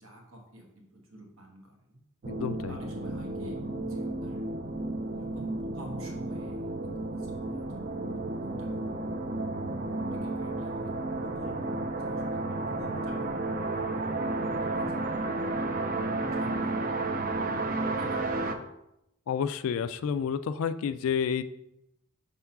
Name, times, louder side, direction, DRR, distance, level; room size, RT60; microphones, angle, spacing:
voice 1, 0.0-2.0 2.7-9.0 9.3-9.4 10.1-10.9 11.2-15.7 16.2-17.3 18.0-18.6, equal, 65° right, 0 dB, 1.4 m, -49 dB
voice 2, 2.2-2.8 19.3-21.4, left 7 dB, 65° left, 11 dB, 0.3 m, -30 dB
sound 1, 2.2-18.6, right 2 dB, 40° right, 0.5 m, -32 dB
5.5 x 3.5 x 5.7 m, 0.85 s
head